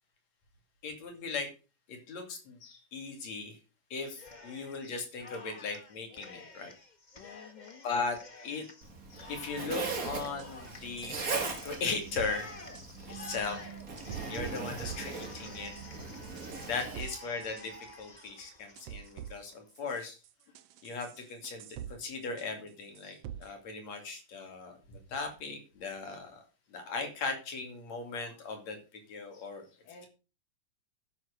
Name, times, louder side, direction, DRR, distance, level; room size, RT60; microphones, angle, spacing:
voice 1, 0.8-1.5 1.9-3.6 3.9-6.7 7.8-8.7 9.1-11.3 11.6-12.5 13.0-13.6 14.3-15.7 16.6-20.2 20.8-26.4 26.7-29.7, left 4 dB, 55° left, 5 dB, 3.8 m, -38 dB
Cheering, 4.0-4.9 5.2-19.6, left 2 dB, 35° left, 0.7 m, -49 dB
voice 2, 7.2-7.9 17.0-17.4 26.1-26.3 29.8-30.1, left 6 dB, 80° left, 1 dB, 3.4 m, -53 dB
Zipper (clothing), 8.8-17.0, right 4 dB, 30° right, 2.1 m, -40 dB
sound 1, 10.1-10.5 11.0-12.3 12.6-12.8 13.4-13.5 14.0-14.6 14.8-15.2 15.8-15.9 16.2-17.7 18.2-18.3 18.8-19.3 19.7-21.9 22.2-22.7 22.9-23.5, right 10 dB, 80° right, 1.4 m, -45 dB
11.0 x 7.7 x 6.6 m, 0.33 s
omnidirectional pair, 3.7 m